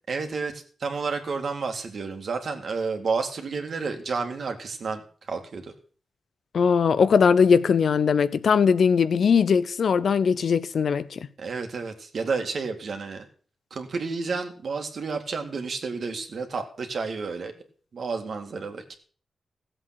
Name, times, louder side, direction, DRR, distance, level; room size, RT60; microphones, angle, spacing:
voice 1, 0.1-5.7 11.4-13.3 13.7-17.5 17.9-19.0, right 4 dB, 60° right, 2.3 m, -31 dB
voice 2, 6.5-11.3, left 6 dB, 70° left, 0.8 m, -20 dB
15.5 x 7.9 x 5.9 m
cardioid pair, 95°, 0 cm